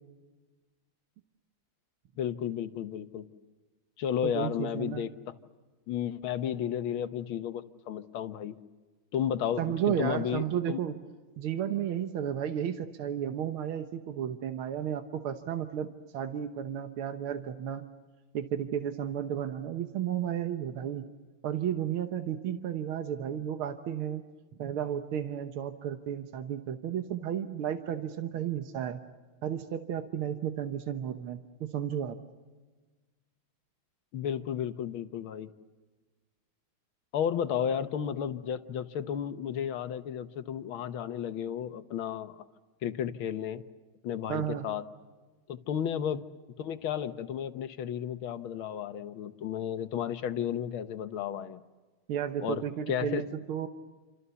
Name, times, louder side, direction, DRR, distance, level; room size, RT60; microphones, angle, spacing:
voice 1, 2.2-3.3 4.0-5.3 5.9-8.6 9.1-10.8 34.1-35.5 37.1-42.4 42.8-43.6 44.0-44.8 45.5-46.2 46.6-51.6 52.4-53.2, left 9 dB, 75° left, 10 dB, 1.9 m, -33 dB
voice 2, 4.2-5.0 9.6-10.9 11.4-17.9 18.3-21.1 21.4-24.2 24.6-29.0 29.4-32.2 44.3-44.7 52.1-53.7, right 9 dB, 90° right, 8 dB, 2.0 m, -33 dB
28.5 x 26.5 x 7.0 m, 1.3 s
omnidirectional pair, 2.3 m